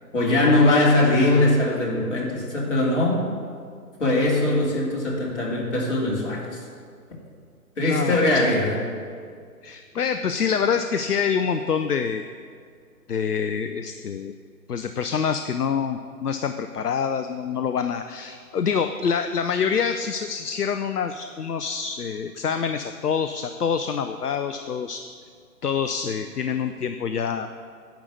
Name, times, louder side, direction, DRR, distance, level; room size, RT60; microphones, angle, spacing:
voice 1, 0.1-3.3 4.0-6.6 7.8-8.8, left 2 dB, 50° left, -3 dB, 2.9 m, -21 dB
voice 2, 7.8-8.2 9.6-12.2 13.1-14.3 14.7-25.0 25.6-27.5, left 6 dB, 70° left, 8 dB, 0.7 m, -26 dB
10.5 x 5.3 x 8.1 m, 2.2 s
figure-of-eight pair, 150°, 47 cm